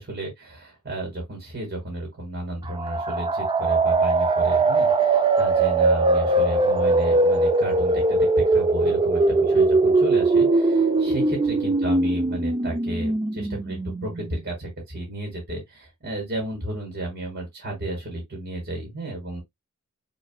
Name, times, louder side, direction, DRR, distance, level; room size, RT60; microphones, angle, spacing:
voice 1, 0.0-19.4, right 1 dB, 50° right, 2.0 m, -33 dB
sound 1, 2.7-14.3, right 3 dB, 20° right, 0.4 m, -21 dB
5.8 x 3.1 x 2.3 m
head